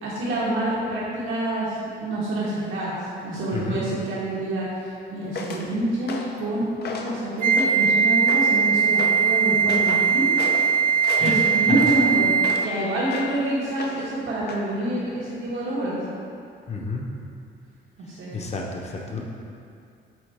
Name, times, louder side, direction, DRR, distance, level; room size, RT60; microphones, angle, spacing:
voice 1, 0.0-2.9 3.2-4.7 5.1-6.6 7.0-10.3 11.2-16.0 18.1-18.3, right 1 dB, 80° right, -7 dB, 1.5 m, -27 dB
sound 1, 5.3-5.7 6.1-6.4 6.8-7.2 7.6-7.9 8.3-8.6 9.0-9.2 9.7-10.1 10.4-10.7 11.0-12.7 13.1-13.4 13.8-14.1 14.5-14.7, left 3 dB, 55° left, 0.7 m, -34 dB
Wind instrument woodwind instrument, 7.4-12.8, right 6 dB, 45° right, 0.4 m, -20 dB
voice 2, 16.7-17.0 18.3-19.2, left 4 dB, 35° left, -1 dB, 0.9 m, -31 dB
7.6 x 4.0 x 3.5 m, 2.4 s
cardioid pair, 90°, 20 cm